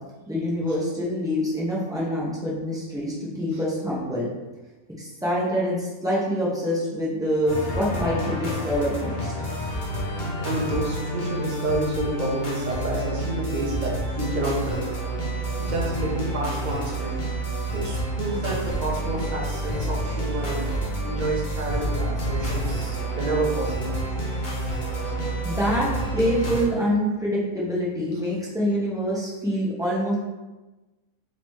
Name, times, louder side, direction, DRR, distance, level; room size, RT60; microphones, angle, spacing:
voice 1, 0.3-4.3 5.0-9.3 25.4-30.1, equal, 5° right, -7 dB, 0.6 m, -25 dB
sound 1, 7.5-26.7, right 1 dB, 40° left, 0.7 m, -29 dB
voice 2, 10.4-14.9 15.6-17.2 17.7-20.7 21.0-24.0 25.0-25.2, right 2 dB, 45° right, -2 dB, 0.6 m, -29 dB
4.0 x 3.0 x 3.1 m, 1.1 s
omnidirectional pair, 1.7 m